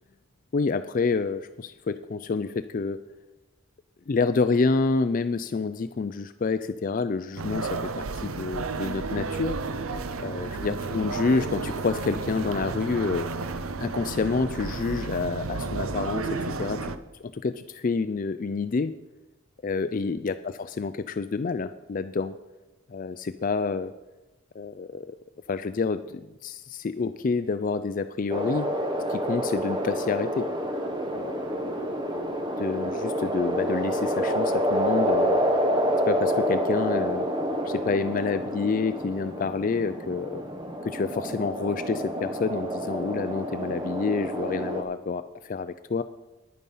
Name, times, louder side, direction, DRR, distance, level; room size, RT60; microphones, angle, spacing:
voice 1, 0.5-3.0 4.1-9.6 10.2-13.3 13.8-16.9 17.2-18.9 19.6-22.4 22.9-23.9 24.5-25.2 25.5-28.7 29.1-30.5 31.1-31.5 32.6-35.4 36.1-37.2 37.6-40.4 40.8-46.0, left 4 dB, 40° left, 11 dB, 0.4 m, -28 dB
sound 1, 7.4-17.0, right 4 dB, 90° right, 0.7 m, -32 dB
sound 2, 28.3-44.8, equal, 20° right, 1.0 m, -28 dB
10.5 x 9.5 x 5.5 m, 1.1 s
head